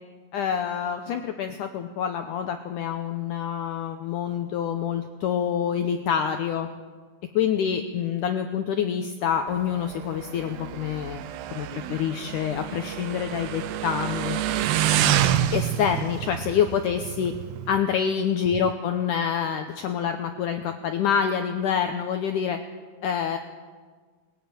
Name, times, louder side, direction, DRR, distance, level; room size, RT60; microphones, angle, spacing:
voice 1, 0.3-6.7 7.3-11.2 11.5-14.4 15.5-17.3 17.7-22.6 23.0-23.4, left 8 dB, 85° left, 7 dB, 1.8 m, -26 dB
Motorcycle, 9.5-17.8, right 11 dB, 85° right, 3.0 m, -28 dB
20.5 x 14.0 x 9.1 m, 1.5 s
omnidirectional pair, 4.7 m